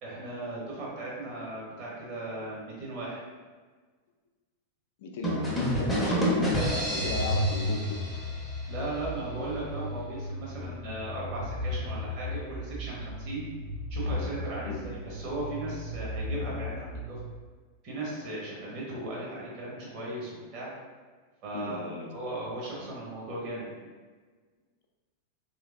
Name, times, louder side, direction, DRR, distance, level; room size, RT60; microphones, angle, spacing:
voice 1, 0.0-3.2 6.0-6.2 8.7-13.5 13.9-17.2 17.8-20.7 21.4-23.8, right 2 dB, 40° right, -5 dB, 1.1 m, -37 dB
voice 2, 5.0-8.0 14.7-14.9 21.5-22.1, left 2 dB, 55° left, 2 dB, 0.5 m, -35 dB
sound 1, 5.2-9.0, equal, 5° left, 0.7 m, -29 dB
sound 2, 5.2-17.3, left 1 dB, 65° right, 0.8 m, -35 dB
3.1 x 3.1 x 2.4 m, 1.4 s
figure-of-eight pair, 90°, 0 cm